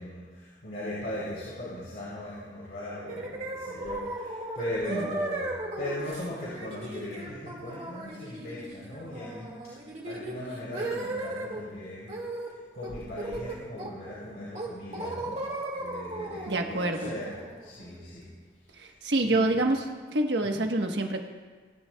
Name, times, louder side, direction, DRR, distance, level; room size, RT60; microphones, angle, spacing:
voice 1, 0.0-9.5 10.0-12.1 12.7-15.4 15.7-18.3 18.8-18.9 19.2-19.6 20.5-20.6, left 1 dB, 80° left, -9 dB, 4.4 m, -38 dB
sound 1, 3.1-11.6 12.1-12.5 12.8-14.1 14.5-18.3, right 2 dB, 40° right, 2.0 m, -37 dB
voice 2, 16.5-17.1 18.8-21.2, right 2 dB, 85° right, 3 dB, 1.2 m, -27 dB
22.0 x 11.0 x 2.3 m, 1.5 s
head